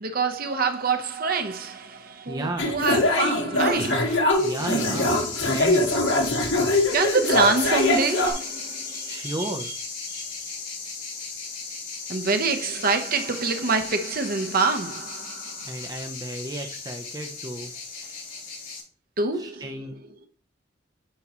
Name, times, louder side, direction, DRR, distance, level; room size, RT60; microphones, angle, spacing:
voice 1, 0.0-4.4 6.9-9.8 10.1-10.3 12.1-15.9 16.6-16.7 18.0-18.1 19.2-20.3, right 4 dB, 50° right, 1.0 m, -26 dB
voice 2, 2.3-2.8 4.4-5.9 9.1-9.7 15.6-17.7 19.4-19.9, right 1 dB, 20° right, 0.7 m, -33 dB
sound 1, 2.6-8.3, left 2 dB, 75° left, 1.6 m, -23 dB
sound 2, 4.3-18.8, left 4 dB, 45° left, 4.3 m, -36 dB
9.4 x 5.3 x 3.0 m
head